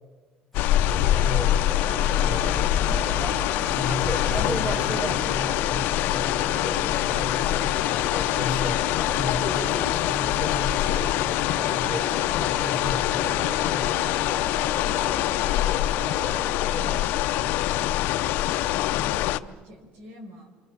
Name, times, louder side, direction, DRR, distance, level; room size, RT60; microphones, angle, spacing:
sound 1, 0.5-19.4, left 14 dB, 75° left, 0.7 m, -24 dB
sound 2, 0.5-11.1, left 5 dB, 5° left, 1.9 m, -38 dB
voice 1, 0.9-1.6 2.2-2.8 3.7-8.8 9.1-14.0, left 1 dB, 40° right, 2 dB, 2.9 m, -35 dB
sound 3, 1.1-17.1, right 3 dB, 20° right, 0.7 m, -38 dB
voice 2, 14.4-20.5, left 1 dB, 75° right, 5 dB, 5.4 m, -46 dB
28.0 x 25.0 x 7.2 m, 1.4 s
cardioid pair, 160°, 3 cm